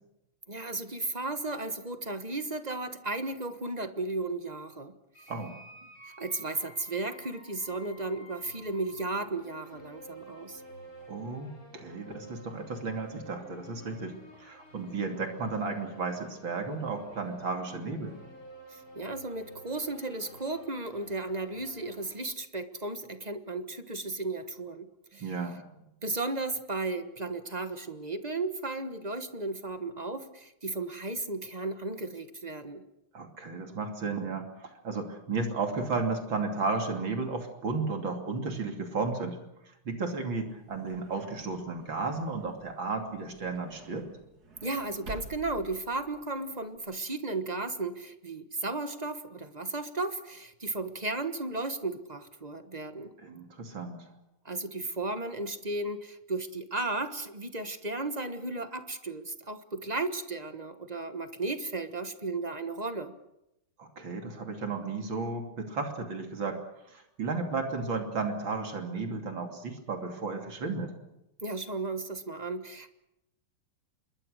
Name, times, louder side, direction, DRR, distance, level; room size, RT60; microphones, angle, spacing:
voice 1, 0.5-4.9 6.0-10.6 18.7-25.3 26.0-32.8 44.6-53.1 54.4-63.1 71.4-72.9, right 2 dB, 25° right, 9 dB, 1.1 m, -35 dB
sound 1, 5.1-22.1, right 1 dB, 50° left, 5.3 m, -51 dB
voice 2, 11.1-18.2 25.2-25.9 33.1-39.4 39.6-44.1 53.2-54.1 63.8-66.6 66.9-70.9, right 4 dB, 65° right, 4 dB, 3.5 m, -34 dB
sound 2, 40.4-46.8, right 4 dB, 45° right, 2.9 m, -50 dB
26.5 x 22.0 x 6.5 m, 0.87 s
omnidirectional pair, 2.3 m